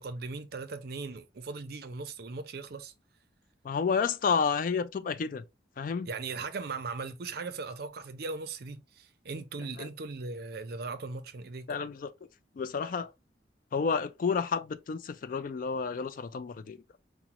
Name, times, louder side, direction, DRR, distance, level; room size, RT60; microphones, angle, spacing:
voice 1, 0.0-2.9 6.1-11.7, right 4 dB, 60° right, 0.5 m, -38 dB
voice 2, 3.6-5.4 5.8-6.1 9.8-9.9 11.7-12.1 12.6-13.1 13.7-16.8, left 5 dB, 50° left, 0.3 m, -30 dB
4.9 x 2.1 x 2.8 m
head